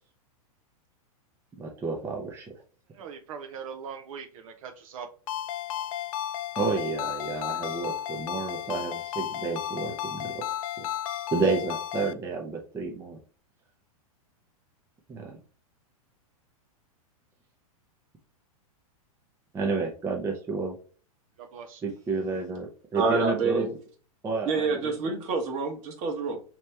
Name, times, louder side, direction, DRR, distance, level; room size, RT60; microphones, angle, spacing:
voice 1, 1.6-2.5 6.6-10.5 10.8-10.9 11.3-13.2 15.1-15.4 19.5-20.8 21.8-23.7 24.2-25.1, right 4 dB, 15° right, 0.5 m, -30 dB
voice 2, 2.9-5.1 21.4-21.8, right 6 dB, 65° right, 0.6 m, -41 dB
Ringtone, 5.3-12.1, left 11 dB, 70° left, 0.4 m, -33 dB
voice 3, 22.9-23.7 24.4-26.4, right 4 dB, 40° right, 1.2 m, -27 dB
3.2 x 2.9 x 3.2 m
hypercardioid pair, 135°, 18 cm